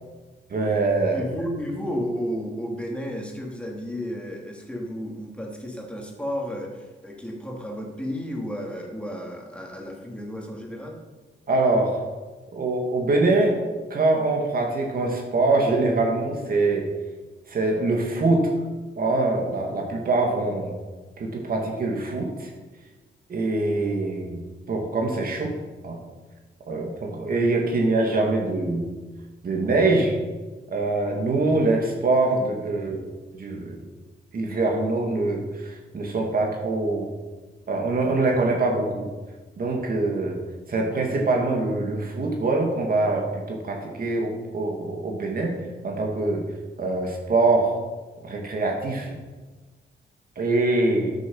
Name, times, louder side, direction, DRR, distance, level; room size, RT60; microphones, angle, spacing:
voice 1, 0.5-1.2 11.5-12.0 12.5-13.6 13.9-16.9 17.5-18.6 19.0-20.7 21.2-22.5 23.3-24.4 24.7-25.6 25.8-26.0 26.7-28.9 29.4-30.2 30.7-33.0 33.3-33.8 34.3-37.1 37.7-39.1 39.6-40.4 40.7-45.6 45.8-46.5 46.8-47.8 48.2-49.2 50.4-51.1, right 2 dB, 50° right, 0 dB, 2.2 m, -24 dB
voice 2, 1.1-11.0 31.4-31.5, equal, 5° left, 0 dB, 2.7 m, -32 dB
12.5 x 7.1 x 5.5 m, 1.3 s
cardioid pair, 105°, 19 cm